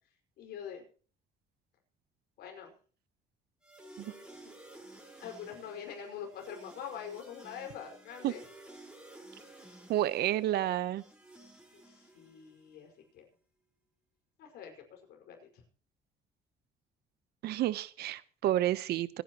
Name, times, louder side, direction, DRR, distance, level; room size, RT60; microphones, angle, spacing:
voice 1, 0.4-0.8 2.4-2.7 4.0-4.5 5.2-8.4 11.7-13.2 14.4-15.6, left 8 dB, 75° left, 2 dB, 5.4 m, -45 dB
sound 1, 3.6-12.7, right 1 dB, 5° right, 4.8 m, -54 dB
voice 2, 9.9-11.0 17.4-19.2, right 13 dB, 70° right, 16 dB, 1.0 m, -30 dB
26.5 x 10.5 x 3.1 m, 0.42 s
cardioid pair, 110°, 17 cm